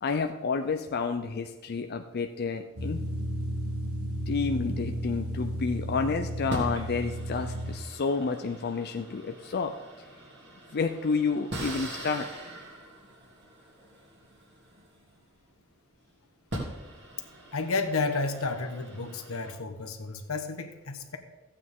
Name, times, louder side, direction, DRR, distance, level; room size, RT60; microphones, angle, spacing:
voice 1, 0.0-3.0 4.3-10.1 10.7-12.3, left 4 dB, 50° left, 6 dB, 0.5 m, -30 dB
sound 1, 2.8-7.8, right 1 dB, 85° right, 2.0 m, -33 dB
sound 2, 5.0-5.8 6.5-15.6 16.1-16.2 16.5-19.5, right 1 dB, 55° right, 2.7 m, -42 dB
voice 2, 17.5-21.2, left 3 dB, 80° left, 7 dB, 1.2 m, -31 dB
15.0 x 8.5 x 3.6 m, 1.2 s
head